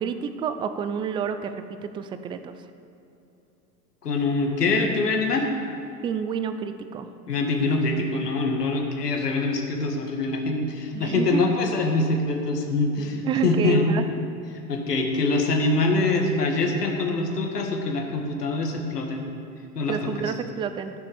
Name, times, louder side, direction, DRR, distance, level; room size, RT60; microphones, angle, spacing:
voice 1, 0.0-2.6 6.0-7.1 10.9-11.5 13.2-14.0 19.9-20.9, right 7 dB, 10° right, 9 dB, 0.4 m, -29 dB
voice 2, 4.0-5.5 7.3-13.8 14.5-19.3 19.7-20.3, left 3 dB, 75° left, 2 dB, 1.9 m, -24 dB
14.5 x 6.8 x 7.1 m, 2.8 s
figure-of-eight pair, 90°, 47 cm